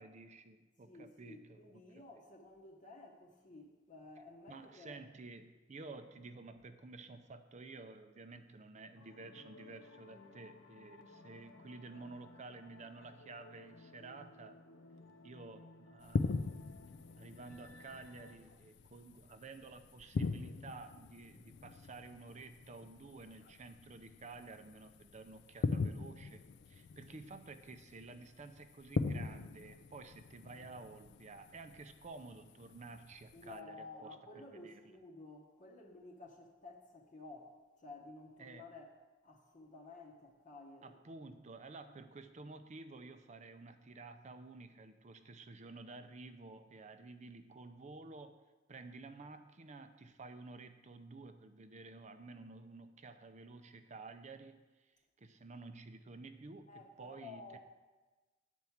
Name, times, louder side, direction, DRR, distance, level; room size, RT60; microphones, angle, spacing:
voice 1, 0.0-1.6 4.5-14.6 15.2-16.7 17.2-34.1 34.5-34.8 38.4-38.6 40.8-48.4 48.7-54.9 55.2-56.7 57.0-57.6, right 3 dB, 40° right, 9 dB, 0.5 m, -52 dB
voice 2, 0.9-5.0 33.3-38.9 39.2-40.9 41.8-42.0 56.7-57.6, left 3 dB, 40° left, 0 dB, 0.9 m, -53 dB
sound 1, 9.0-18.4, left 2 dB, 80° left, 0.7 m, -58 dB
sound 2, 16.0-33.6, left 4 dB, 60° left, 0.4 m, -42 dB
9.2 x 4.6 x 7.1 m, 1.2 s
head